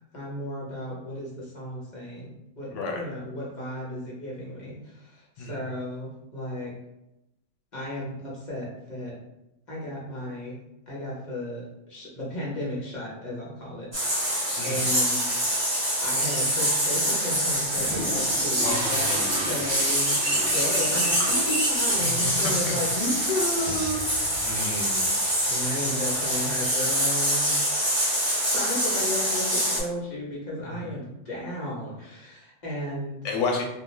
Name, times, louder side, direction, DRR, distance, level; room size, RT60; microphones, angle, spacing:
voice 1, 0.1-6.7 7.7-9.1 9.7-10.5 10.9-14.3 14.6-15.3 16.0-20.2 20.5-24.1 24.4-24.7 25.5-27.5 28.5-33.2, left 1 dB, 40° left, -6 dB, 1.0 m, -34 dB
voice 2, 2.7-3.0 5.4-5.5 14.6-14.8 18.6-19.4 22.0-22.7 24.4-25.1 30.6-30.8 33.2-33.6, left 3 dB, 80° left, 1 dB, 0.9 m, -31 dB
sound 1, 13.9-29.8, equal, 15° right, 0.6 m, -25 dB
sound 2, 17.3-26.7, right 2 dB, 65° right, 0.7 m, -37 dB
2.4 x 2.2 x 3.0 m, 0.90 s
omnidirectional pair, 1.2 m